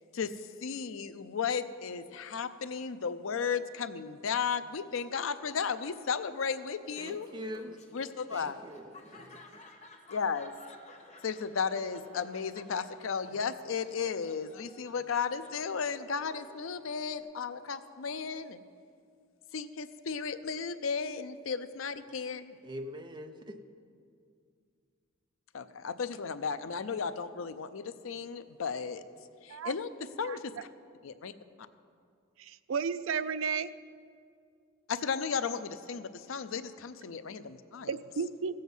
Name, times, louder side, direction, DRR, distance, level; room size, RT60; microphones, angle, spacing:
voice 1, 0.6-7.3 7.9-8.6 10.1-10.5 11.2-18.6 19.5-22.6 25.5-29.0 29.4-29.9 30.2-30.5 31.0-31.3 34.9-37.9, left 6 dB, 80° left, 12 dB, 0.5 m, -34 dB
Laughter, 6.8-17.2, left 2 dB, 35° left, 1.1 m, -55 dB
voice 2, 7.0-7.8 8.3-9.4 22.6-23.6, equal, 20° right, 6 dB, 0.6 m, -43 dB
voice 3, 32.4-33.7 37.9-38.6, right 6 dB, 75° right, 14 dB, 0.4 m, -33 dB
16.0 x 7.7 x 5.5 m, 2.3 s
head